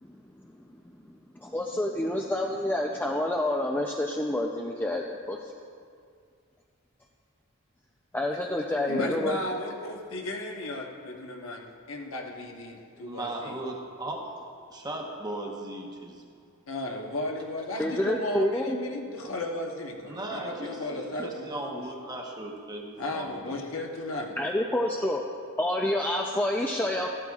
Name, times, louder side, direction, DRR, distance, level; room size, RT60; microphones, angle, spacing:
voice 1, 1.4-5.5 8.1-9.4 17.8-18.8 24.4-25.2 25.6-27.1, left 1 dB, 10° left, 0 dB, 0.4 m, -28 dB
voice 2, 8.9-13.6 16.7-21.8 23.0-24.4, left 1 dB, 65° left, 1 dB, 1.1 m, -35 dB
voice 3, 13.0-14.4 14.7-16.4 17.7-18.0 20.0-23.6, right 1 dB, 20° right, 0 dB, 1.0 m, -37 dB
14.0 x 12.5 x 2.4 m, 2.2 s
head